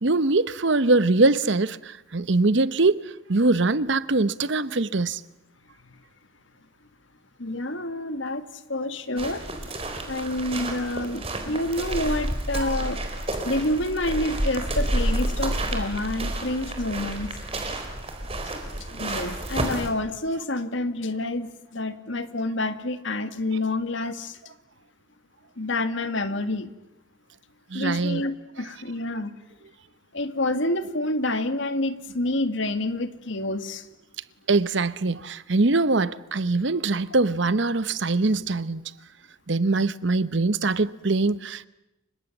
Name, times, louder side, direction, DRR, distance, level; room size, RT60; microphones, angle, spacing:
voice 1, 0.0-5.2 12.6-12.7 27.7-28.2 34.5-38.8 39.5-41.7, right 3 dB, 60° right, 0.9 m, -23 dB
voice 2, 7.4-9.5 10.1-13.0 13.5-17.3 18.9-24.4 25.6-26.7 27.7-29.3 30.1-33.9, left 1 dB, 65° left, 1.9 m, -28 dB
sound 1, 9.2-19.9, right 1 dB, 30° right, 4.2 m, -30 dB
29.5 x 25.0 x 7.2 m
head